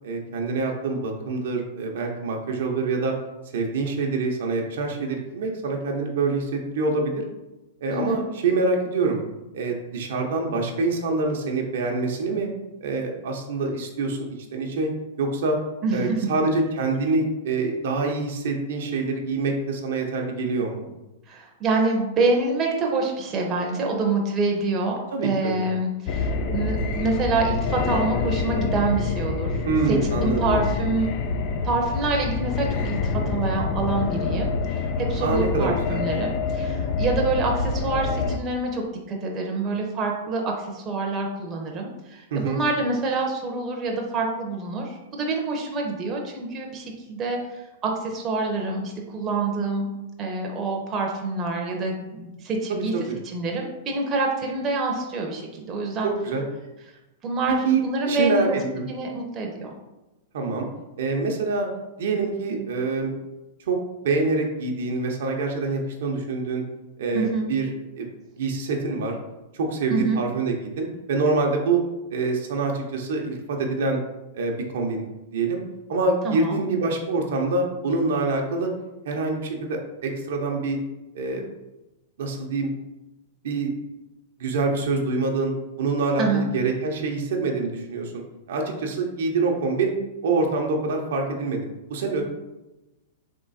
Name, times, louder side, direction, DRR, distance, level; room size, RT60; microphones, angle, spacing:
voice 1, 0.0-3.1 3.5-7.1 7.8-9.2 9.5-12.5 12.8-14.9 15.2-15.6 15.9-20.9 25.1-25.7 29.6-30.7 35.2-36.0 42.3-42.6 52.7-53.2 56.0-56.4 57.6-58.9 60.3-60.7 61.0-61.7 62.0-63.1 63.7-63.8 64.0-66.6 67.0-67.7 68.0-68.1 68.4-69.2 69.5-71.8 72.1-74.0 74.3-75.6 75.9-78.7 79.0-80.8 81.1-81.4 82.2-82.7 83.4-83.7 84.4-88.2 88.5-89.9 90.2-92.2, right 3 dB, 75° right, 1 dB, 0.9 m, -25 dB
voice 2, 15.8-16.2 21.3-25.0 25.2-31.1 31.5-47.4 47.8-49.9 50.2-52.9 53.2-56.1 57.2-58.6 58.8-59.7 67.1-67.5 69.9-70.2 76.2-76.6 86.2-86.5, right 3 dB, 25° right, 0 dB, 0.8 m, -26 dB
sound 1, 26.1-38.4, left 4 dB, 45° left, 0.4 m, -26 dB
3.7 x 3.0 x 4.1 m, 1.0 s
hypercardioid pair, 135°, 0 cm